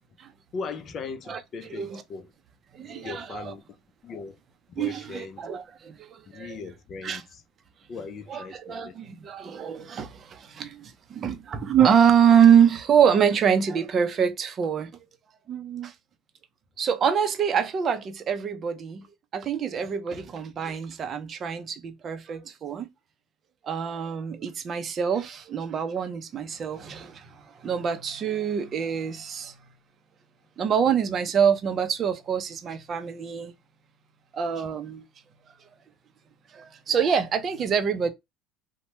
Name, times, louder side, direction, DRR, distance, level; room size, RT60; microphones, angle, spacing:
voice 1, 0.5-2.3 2.8-3.8 4.0-4.4 4.7-5.5 6.3-7.4 7.9-9.0, left 4 dB, 40° left, 0.5 m, -39 dB
voice 2, 2.7-3.5 4.8-6.6 7.0-7.2 8.3-14.9 15.5-15.9 16.8-19.1 19.3-22.9 23.6-29.6 30.6-33.5 34.3-35.0 36.5-38.1, right 7 dB, 40° right, 0.5 m, -25 dB
2.8 x 2.1 x 3.0 m
supercardioid pair, 110°, 0 cm